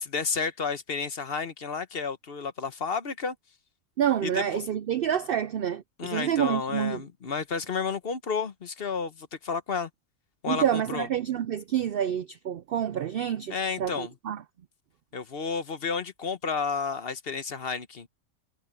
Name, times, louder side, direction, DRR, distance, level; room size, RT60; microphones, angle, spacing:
voice 1, 0.0-3.3 4.2-4.4 6.0-9.9 10.4-11.1 13.5-14.1 15.1-18.1, left 5 dB, 45° left, 1.1 m, -31 dB
voice 2, 4.0-7.0 10.5-14.4, right 9 dB, 80° right, 0.5 m, -28 dB
omnidirectional pair, 1.5 m